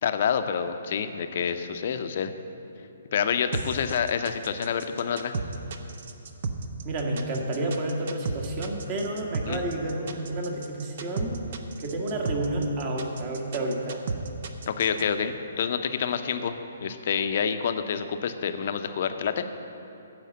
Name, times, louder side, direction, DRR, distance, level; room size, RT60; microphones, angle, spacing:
voice 1, 0.0-2.3 3.1-5.3 9.5-9.6 14.7-19.4, left 7 dB, 45° left, 8 dB, 0.7 m, -28 dB
sound 1, 3.5-15.0, right 4 dB, 50° right, 0.8 m, -33 dB
voice 2, 6.8-11.4 11.8-14.0, right 1 dB, 30° right, 1 dB, 1.5 m, -30 dB
14.5 x 4.9 x 7.5 m, 2.9 s
figure-of-eight pair, 130°, 0 cm